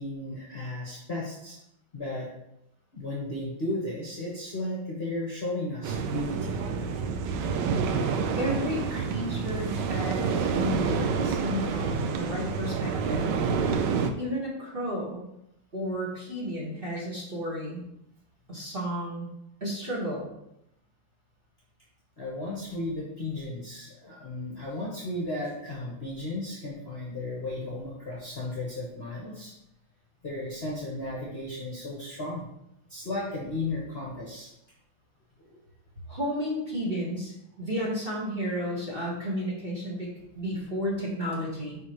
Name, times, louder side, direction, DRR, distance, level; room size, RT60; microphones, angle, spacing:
voice 1, 0.0-1.6 1.9-2.3 2.9-6.6 22.2-29.5 30.2-32.5 32.9-34.5 35.4-35.6, left 2 dB, 35° left, -5 dB, 1.2 m, -34 dB
sound 1, 5.8-14.1, right 5 dB, 70° right, 1.1 m, -28 dB
voice 2, 8.4-13.4 14.2-15.2 15.7-17.8 18.5-19.3 19.6-20.3 36.1-37.3 37.6-40.1 40.4-41.8, equal, 30° right, -6 dB, 1.6 m, -32 dB
9.9 x 3.8 x 3.1 m, 0.83 s
omnidirectional pair, 2.3 m